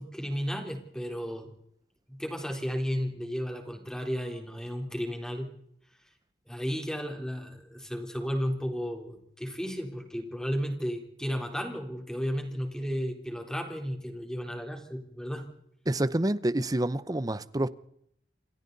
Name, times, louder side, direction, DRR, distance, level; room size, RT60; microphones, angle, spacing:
voice 1, 0.0-1.5 2.1-5.5 6.5-15.4, equal, 5° left, 3.8 m, -33 dB
voice 2, 15.9-17.7, right 1 dB, 20° right, 0.7 m, -27 dB
28.5 x 26.5 x 4.1 m
head